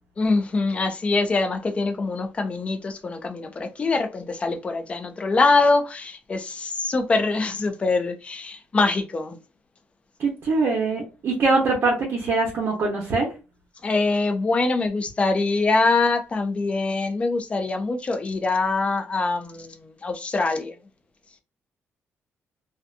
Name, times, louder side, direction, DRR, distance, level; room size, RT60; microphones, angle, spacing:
voice 1, 0.2-9.4 13.8-20.7, left 3 dB, 25° left, 0.5 m, -24 dB
voice 2, 10.2-13.3, right 3 dB, 50° right, 0.9 m, -23 dB
2.6 x 2.2 x 2.5 m
cardioid pair, 145°, 5 cm